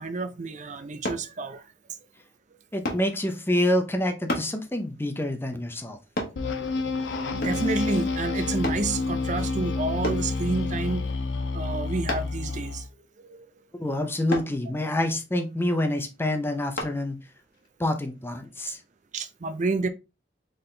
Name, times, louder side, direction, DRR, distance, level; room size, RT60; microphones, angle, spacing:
voice 1, 0.0-1.6 7.4-11.0 11.5-12.8 13.2-13.5 19.1-19.9, right 3 dB, 40° right, 0.5 m, -29 dB
sound 1, 1.0-1.3 2.8-3.1 4.3-4.5 6.2-6.4 7.4-7.7 8.6-8.9 10.0-10.3 12.1-12.4 14.3-14.5 16.8-17.0 17.5-17.7, left 1 dB, 50° left, 1.2 m, -30 dB
voice 2, 2.7-6.0 13.8-17.2 17.8-18.8, left 1 dB, 10° left, 0.6 m, -27 dB
sound 2, 6.4-12.9, left 3 dB, 70° left, 0.6 m, -29 dB
4.1 x 3.8 x 3.3 m
head